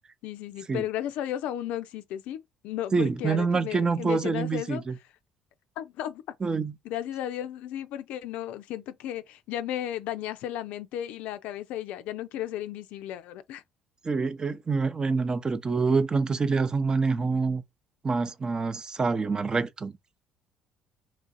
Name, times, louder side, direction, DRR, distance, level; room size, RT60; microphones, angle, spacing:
voice 1, 0.2-4.8 5.8-6.2 6.8-13.6, left 12 dB, 70° left, 0.4 m, -34 dB
voice 2, 2.9-5.0 6.4-6.7 14.0-17.6 18.0-19.9, right 4 dB, 30° right, 0.5 m, -26 dB
3.1 x 2.5 x 3.9 m
hypercardioid pair, 65°, 3 cm